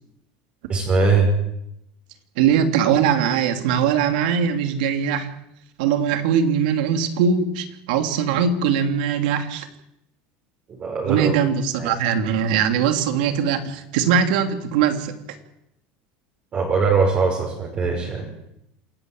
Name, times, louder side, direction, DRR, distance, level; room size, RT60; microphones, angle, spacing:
voice 1, 0.7-1.3 10.7-11.3 11.8-11.9 16.5-18.3, right 4 dB, 30° right, -1 dB, 5.7 m, -21 dB
voice 2, 2.4-5.3 5.8-9.7 11.0-15.1, right 7 dB, 85° right, 6 dB, 3.0 m, -21 dB
27.5 x 14.5 x 9.0 m, 0.83 s
cardioid pair, 155°, 4 cm